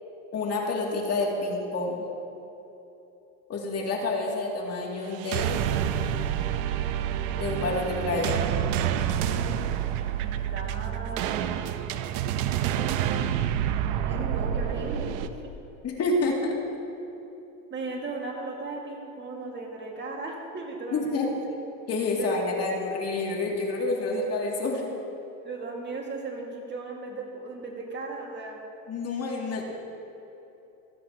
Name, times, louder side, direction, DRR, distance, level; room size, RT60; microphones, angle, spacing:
voice 1, 0.3-2.1 3.5-5.6 7.4-8.4 15.8-16.6 20.9-21.3 21.9-24.8 28.9-29.6, left 2 dB, 40° left, -1 dB, 2.5 m, -28 dB
sound 1, 5.1-15.3, right 10 dB, 75° right, 0.8 m, -28 dB
voice 2, 10.1-11.7 14.0-15.5 17.7-21.6 22.2-22.3 25.4-28.6, right 3 dB, 25° right, 0 dB, 1.9 m, -37 dB
27.0 x 9.3 x 2.9 m, 3.0 s
supercardioid pair, 115°, 39 cm